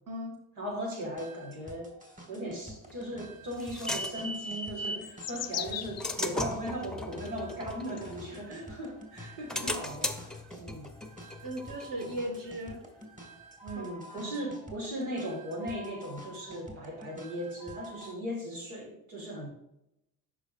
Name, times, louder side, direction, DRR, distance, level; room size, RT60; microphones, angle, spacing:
voice 1, 0.1-0.4 5.3-5.4 11.4-12.8 13.8-14.3, equal, 45° right, 3 dB, 1.8 m, -38 dB
voice 2, 0.6-1.9 2.3-10.9 13.6-19.5, equal, 75° right, -1 dB, 1.8 m, -38 dB
sound 1, 0.9-18.1, right 1 dB, 15° right, 2.1 m, -49 dB
sound 2, 2.9-5.1 5.6-8.7 9.2-12.6, left 1 dB, ahead, 0.8 m, -37 dB
sound 3, 4.5-6.6 7.3-7.4 8.0-8.6, left 10 dB, 35° left, 0.5 m, -38 dB
11.0 x 4.5 x 2.5 m, 0.84 s
hypercardioid pair, 50°, 46 cm